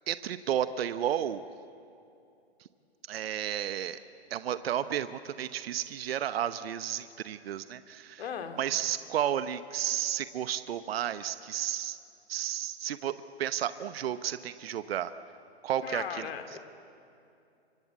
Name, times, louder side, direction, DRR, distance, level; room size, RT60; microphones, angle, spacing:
voice 1, 0.1-1.4 3.1-4.0 4.3-8.2 8.6-12.0 12.3-13.1 13.4-15.1 15.6-16.6, right 10 dB, 60° right, 12 dB, 1.0 m, -32 dB
voice 2, 8.2-8.6 15.8-16.6, left 7 dB, 65° left, 7 dB, 2.9 m, -37 dB
28.0 x 25.0 x 8.4 m, 2.6 s
hypercardioid pair, 120°, 33 cm